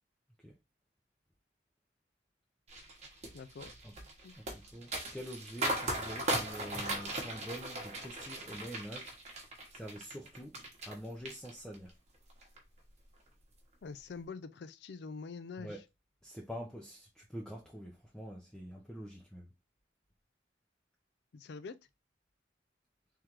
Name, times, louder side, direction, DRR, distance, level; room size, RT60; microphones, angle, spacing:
sound 1, 2.7-11.0 11.3-11.9 12.3-12.6, right 1 dB, 35° right, 1.1 m, -38 dB
voice 1, 3.3-3.7 4.2-4.3 13.8-15.8 21.3-21.8, left 4 dB, 65° left, 0.4 m, -45 dB
voice 2, 4.4-9.1 9.7-10.6 10.9-11.9 15.6-15.8 16.2-19.5, equal, 5° left, 0.6 m, -46 dB
3.7 x 3.2 x 2.9 m
head